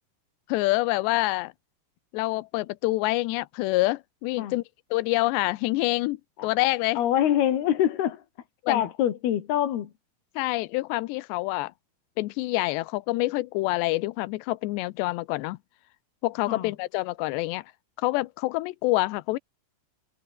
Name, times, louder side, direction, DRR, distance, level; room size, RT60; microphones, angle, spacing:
voice 1, 0.5-1.5 2.1-4.6 4.9-6.2 6.4-7.0 8.6-8.8 10.4-11.7 12.2-15.6 16.2-17.6 18.0-19.4, left 20 dB, 85° left, 2.6 m, -26 dB
voice 2, 7.0-8.2 8.7-9.9 16.5-16.7, left 11 dB, 60° left, 3.7 m, -25 dB
omnidirectional pair, 5.7 m